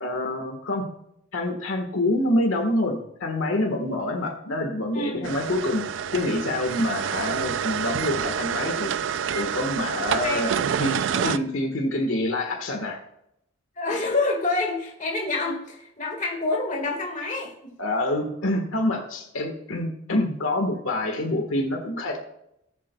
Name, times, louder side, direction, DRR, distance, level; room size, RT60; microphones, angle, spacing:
voice 1, 0.0-0.8 1.3-8.9 9.3-10.5 10.8-13.0 17.8-22.2, left 1 dB, 70° left, 2 dB, 1.5 m, -26 dB
voice 2, 4.9-5.3 10.2-10.7 11.1-11.4 13.8-17.7, left 2 dB, 35° left, 1 dB, 1.8 m, -28 dB
sound 1, 5.2-11.4, right 8 dB, 60° right, 0.3 m, -28 dB
18.5 x 7.5 x 2.3 m, 0.79 s
head